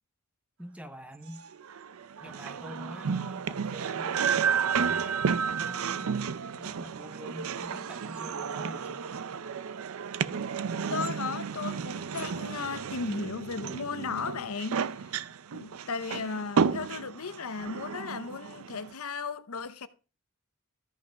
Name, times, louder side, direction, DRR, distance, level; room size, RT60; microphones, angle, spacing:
voice 1, 0.6-1.4 2.2-6.1 6.5-9.1, equal, 5° right, 0.9 m, -45 dB
sound 1, 1.4-18.9, right 6 dB, 70° right, 0.5 m, -32 dB
voice 2, 10.9-15.2 15.5-19.9, left 5 dB, 75° left, 0.7 m, -36 dB
13.0 x 5.3 x 5.2 m
head